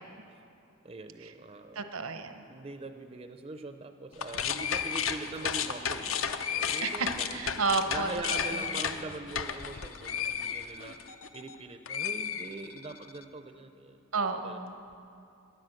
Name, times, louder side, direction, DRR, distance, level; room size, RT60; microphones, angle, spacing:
voice 1, 0.8-1.9 2.5-7.4 7.9-11.0 11.3-14.0 14.4-14.6, right 3 dB, 30° right, 8 dB, 0.4 m, -42 dB
voice 2, 1.7-2.4 6.8-8.1 8.4-8.6 14.1-14.7, right 4 dB, 85° right, 8 dB, 0.9 m, -32 dB
sound 1, 4.1-11.6 11.9-13.0, left 7 dB, 70° left, 0.6 m, -33 dB
12.5 x 10.5 x 7.6 m, 2.6 s
head